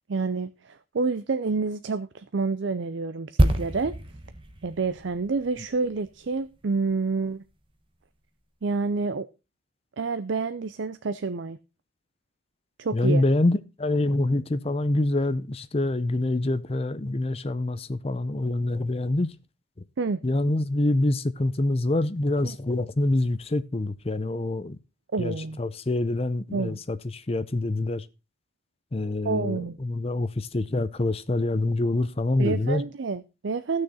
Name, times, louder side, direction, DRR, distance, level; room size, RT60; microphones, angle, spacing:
voice 1, 0.1-3.9 4.6-7.4 8.6-9.3 10.0-11.6 12.8-13.2 20.0-20.2 22.4-22.6 25.1-25.6 26.5-26.8 29.2-29.8 32.4-33.8, right 4 dB, 65° right, 0.5 m, -28 dB
sound 1, 3.4-7.0 7.3-7.5, right 1 dB, 25° right, 1.0 m, -28 dB
voice 2, 12.9-19.3 20.2-24.8 25.2-28.1 28.9-32.8, left 2 dB, 30° left, 0.6 m, -26 dB
14.0 x 6.5 x 4.2 m
head